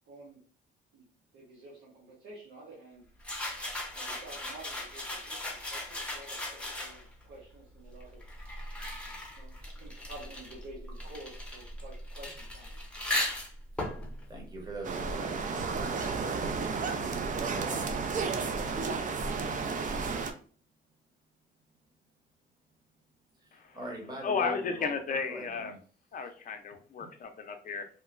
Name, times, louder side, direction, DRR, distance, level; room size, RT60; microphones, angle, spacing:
voice 1, 0.1-0.4 0.9-1.1 1.3-3.6 3.9-8.3 9.4-12.8, right 2 dB, 90° right, -5 dB, 0.9 m, -50 dB
sound 1, 3.2-7.2 8.0-15.4, left 1 dB, 5° left, 0.7 m, -38 dB
voice 2, 14.3-16.5 17.4-18.1 23.4-24.9 25.3-25.8, right 2 dB, 20° right, -1 dB, 1.0 m, -42 dB
sound 2, 14.8-20.3, right 4 dB, 40° right, 0.4 m, -32 dB
voice 3, 24.2-25.7 26.1-27.9, left 5 dB, 45° left, 6 dB, 0.5 m, -34 dB
2.8 x 2.2 x 2.4 m, 0.42 s
cardioid pair, 90°, 20 cm